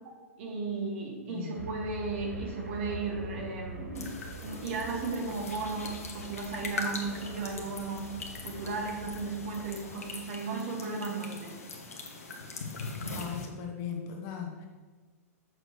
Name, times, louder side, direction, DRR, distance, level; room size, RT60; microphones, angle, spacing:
voice 1, 0.4-4.1 4.4-8.1 8.4-11.6, right 4 dB, 50° right, -1 dB, 1.8 m, -35 dB
voice 2, 1.3-1.6 13.1-14.7, left 8 dB, 35° left, 2 dB, 1.1 m, -38 dB
sound 1, 1.5-10.3, right 1 dB, 80° right, 1.1 m, -45 dB
sound 2, 3.9-13.5, left 3 dB, 65° left, 1.2 m, -41 dB
7.7 x 6.3 x 3.2 m, 1.4 s
figure-of-eight pair, 100°, 8 cm